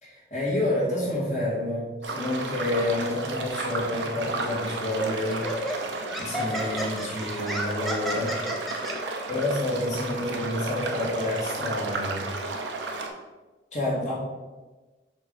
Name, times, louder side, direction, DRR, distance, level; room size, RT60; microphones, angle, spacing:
voice 1, 0.0-5.9 6.2-8.4 9.3-12.3 13.7-14.1, left 1 dB, 40° left, -6 dB, 2.0 m, -29 dB
sound 1, 2.0-13.1, right 3 dB, 90° right, 0.8 m, -33 dB
Laughter, 4.4-4.7 5.3-8.9, equal, ahead, 0.7 m, -32 dB
5.2 x 3.7 x 5.4 m, 1.2 s
head